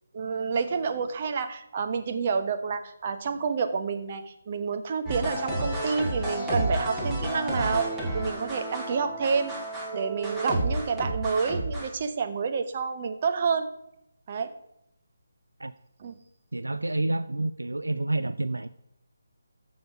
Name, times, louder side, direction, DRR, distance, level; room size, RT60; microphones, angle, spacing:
voice 1, 0.1-7.9 8.1-9.5 9.9-13.7 14.3-14.5 16.0-16.1, right 5 dB, 35° right, 7 dB, 1.2 m, -29 dB
sound 1, 5.1-11.9, right 1 dB, 5° right, 2.1 m, -31 dB
voice 2, 16.5-18.7, right 2 dB, 75° right, 13 dB, 0.5 m, -29 dB
14.0 x 6.3 x 4.8 m, 0.80 s
figure-of-eight pair, 150°, 0 cm